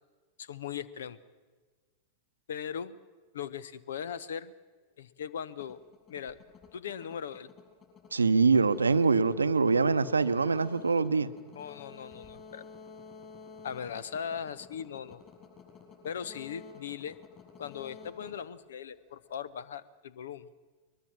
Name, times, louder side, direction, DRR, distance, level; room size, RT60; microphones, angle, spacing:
voice 1, 0.4-1.2 2.5-3.0 3.3-4.5 5.0-5.8 6.1-6.4 6.7-7.5 11.6-12.6 13.6-15.2 16.0-17.2 17.6-20.5, left 8 dB, 65° left, 19 dB, 0.8 m, -39 dB
sound 1, 5.5-19.3, left 5 dB, 30° left, 7.4 m, -51 dB
voice 2, 8.1-11.3, right 4 dB, 75° right, 13 dB, 0.8 m, -24 dB
22.0 x 22.0 x 7.3 m, 1.4 s
figure-of-eight pair, 90°, 0 cm